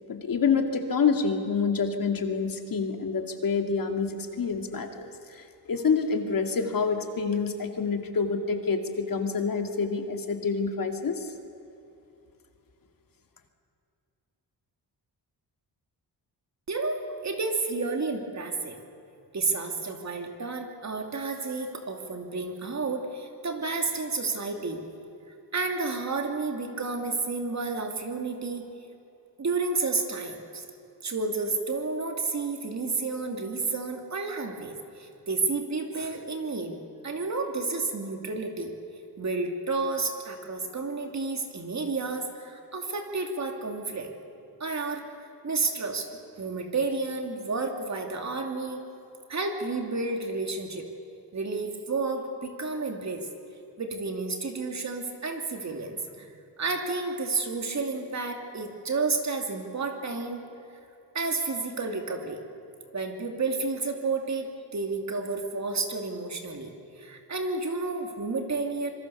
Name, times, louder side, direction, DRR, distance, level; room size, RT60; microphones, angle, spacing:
voice 1, 0.1-11.3, left 5 dB, 55° left, 5 dB, 2.2 m, -27 dB
voice 2, 16.7-18.8 19.3-24.8 25.5-28.6 29.4-30.6 31.0-38.8 39.2-44.1 44.6-45.0 45.4-46.1 46.4-48.8 49.3-50.9 51.3-53.3 53.8-56.3 56.6-60.4 61.1-62.4 62.9-64.5 64.7-66.7 67.0-68.9, right 3 dB, 40° right, 4 dB, 2.7 m, -31 dB
26.0 x 23.5 x 7.1 m, 2.8 s
wide cardioid pair, 135°, 41 cm